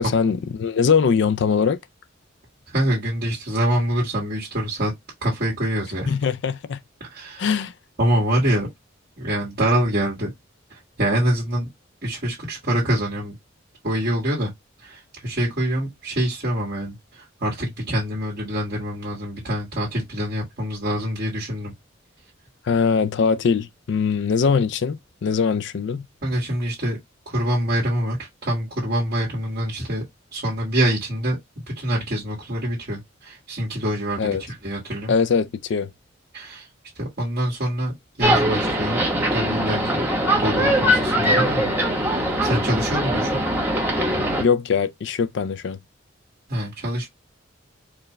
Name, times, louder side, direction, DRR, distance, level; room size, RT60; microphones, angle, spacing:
voice 1, 0.0-1.8 6.1-6.8 7.4-7.7 22.7-26.1 34.2-34.4 35.1-35.9 44.4-45.8, left 6 dB, 60° left, 0.4 m, -21 dB
voice 2, 2.7-4.9 5.2-6.1 7.0-7.5 8.0-8.7 9.2-10.3 10.7-11.7 12.0-13.4 13.8-14.5 14.8-21.7 26.2-27.0 27.3-30.0 30.3-31.4 31.7-34.4 34.6-35.1 36.3-36.7 36.9-39.0 39.3-40.1 40.4-41.6 41.9-43.4 46.5-47.1, right 1 dB, 50° right, 1.8 m, -25 dB
sound 1, 38.2-44.4, equal, 10° right, 1.0 m, -21 dB
4.6 x 2.3 x 3.1 m
head